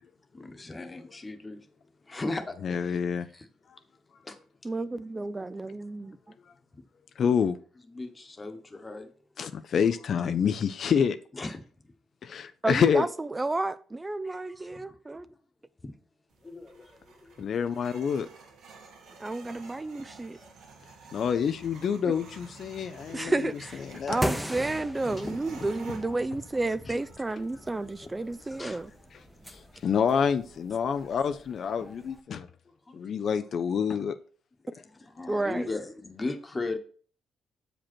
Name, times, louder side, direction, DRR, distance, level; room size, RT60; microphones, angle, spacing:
voice 1, 0.3-1.6 2.0-3.0 3.3-3.5 4.2-4.4 6.7-6.8 7.8-9.1 11.3-11.6 14.2-15.0 15.8-15.9 16.4-17.4 19.1-19.3 20.3-20.5 23.9-24.0 25.0-25.4 26.8-27.0 28.0-28.1 28.4-28.8 32.9-33.0 33.3-33.4 34.7-36.8, left 2 dB, 25° left, 1.1 m, -38 dB
voice 2, 2.6-3.3 7.2-7.6 9.4-11.2 12.2-13.1 17.4-18.3 21.1-23.4 23.8-24.2 29.5-32.5 32.9-34.2, left 7 dB, 60° left, 0.4 m, -27 dB
voice 3, 4.6-6.2 12.6-15.3 19.2-20.4 23.1-28.9 35.3-35.7, right 2 dB, 20° right, 0.3 m, -31 dB
sound 1, 16.3-31.1, right 3 dB, 80° right, 1.9 m, -50 dB
sound 2, 23.8-32.2, equal, ahead, 0.8 m, -39 dB
7.2 x 5.1 x 4.4 m
cardioid pair, 90°, 0 cm